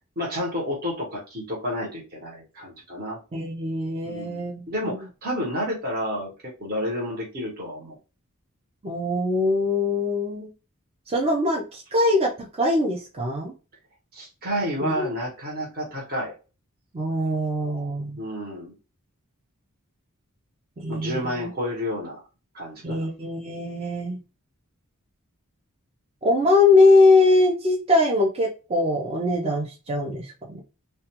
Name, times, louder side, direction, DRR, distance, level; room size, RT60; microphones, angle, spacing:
voice 1, 0.2-3.2 4.0-4.4 4.7-8.0 14.1-16.3 18.2-18.7 20.9-22.2 22.5-23.1, equal, 45° right, -2 dB, 0.9 m, -30 dB
voice 2, 3.3-5.0 8.8-10.5 11.1-13.5 14.8-15.1 16.9-18.2 20.8-21.5 22.8-24.2 26.2-30.6, left 2 dB, 25° right, -2 dB, 0.5 m, -22 dB
2.3 x 2.2 x 2.8 m, 0.32 s
head